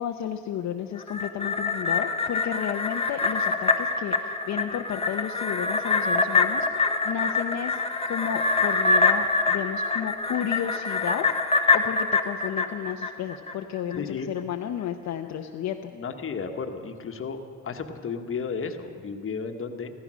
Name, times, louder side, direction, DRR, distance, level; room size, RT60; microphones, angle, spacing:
voice 1, 0.0-15.9, left 9 dB, 65° left, 3 dB, 0.8 m, -32 dB
sound 1, 1.0-13.5 13.9-14.0, left 3 dB, 20° left, 1.0 m, -25 dB
voice 2, 13.9-14.3 15.9-17.4 17.6-19.9, left 5 dB, 45° left, 6 dB, 1.3 m, -33 dB
15.0 x 14.5 x 6.2 m, 2.4 s
cardioid pair, 90°, 30 cm